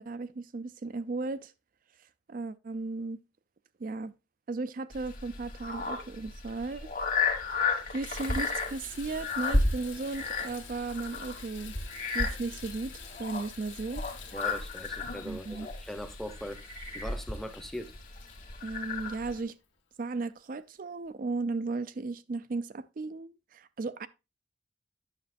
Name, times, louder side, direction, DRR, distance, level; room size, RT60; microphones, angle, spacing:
voice 1, 0.0-1.5 2.3-3.2 3.8-4.1 4.5-6.9 7.9-11.8 12.1-14.0 15.2-15.7 18.6-19.6 20.0-24.1, right 3 dB, 45° right, 0.4 m, -35 dB
sound 1, 4.9-19.4, left 3 dB, 45° left, 1.7 m, -33 dB
Water tap faucet / Bathtub (filling or washing), 6.8-6.9 7.4-19.8 20.4-20.5 21.0-21.1, left 7 dB, 85° left, 1.8 m, -50 dB
voice 2, 14.3-17.9, equal, ahead, 0.7 m, -41 dB
9.6 x 6.7 x 2.5 m
head